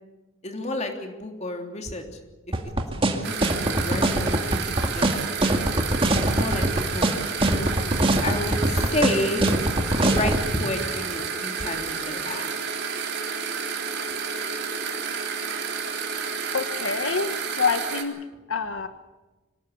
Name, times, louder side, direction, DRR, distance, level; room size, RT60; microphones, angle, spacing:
voice 1, 0.4-2.0 2.9-3.0 3.4-5.2 6.3-7.0 7.5-7.7 8.2-9.5 9.9-12.5, left 1 dB, 35° left, 4 dB, 3.2 m, -30 dB
sound 1, 2.5-10.4, right 1 dB, 25° right, 2.1 m, -22 dB
sound 2, 3.2-18.0, right 6 dB, 55° right, 3.8 m, -31 dB
voice 2, 16.5-18.2 18.5-18.9, left 5 dB, 75° left, 9 dB, 1.2 m, -26 dB
25.0 x 18.5 x 8.4 m, 1.2 s
head